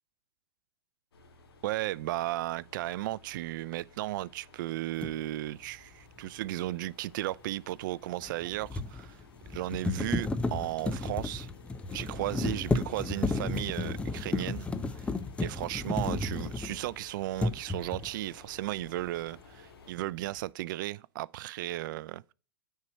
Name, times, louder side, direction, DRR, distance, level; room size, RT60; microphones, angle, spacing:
sound 1, 1.1-19.9, left 4 dB, 80° left, 2.1 m, -56 dB
voice 1, 1.6-9.2 9.5-11.5 11.9-14.7 14.9-15.1 15.4-22.3, right 16 dB, 55° right, 0.5 m, -35 dB
sound 2, 5.0-5.2 8.2-17.0 17.3-18.2, left 3 dB, 10° left, 0.7 m, -33 dB
9.6 x 4.5 x 6.2 m
hypercardioid pair, 115°, 13 cm